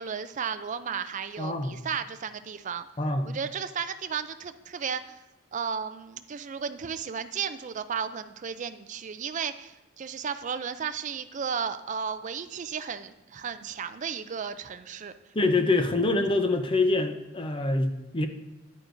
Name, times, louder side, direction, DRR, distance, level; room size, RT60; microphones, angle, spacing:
voice 1, 0.0-2.9 3.2-5.2 5.5-15.1, right 6 dB, 40° right, 11 dB, 0.4 m, -34 dB
voice 2, 1.4-1.8 3.0-3.3 15.3-18.3, left 2 dB, 25° left, 7 dB, 0.6 m, -25 dB
9.6 x 9.1 x 2.6 m, 1.0 s
head